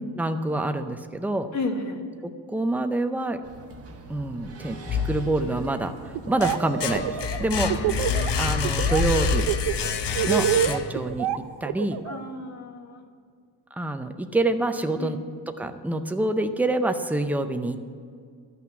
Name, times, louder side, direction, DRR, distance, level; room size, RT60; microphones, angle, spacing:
voice 1, 0.2-1.5 2.2-3.4 4.1-4.8 5.0-7.9 8.4-9.5 10.3-11.3 11.6-12.0 13.7-15.2 15.6-17.9, right 2 dB, 5° right, 7 dB, 0.5 m, -26 dB
voice 2, 1.5-2.0 7.5-8.5 12.0-13.0 15.0-15.3, left 3 dB, 40° left, 4 dB, 1.4 m, -33 dB
sound 1, 3.4-11.0, right 4 dB, 35° right, 1.2 m, -37 dB
sound 2, 4.9-5.7 6.1-11.2, left 6 dB, 70° left, 0.9 m, -27 dB
Laughter, 6.1-6.6 6.9-8.3 8.6-9.0 9.3-12.2, right 11 dB, 85° right, 0.6 m, -26 dB
12.5 x 5.9 x 9.3 m, 2.1 s
cardioid pair, 145°, 44 cm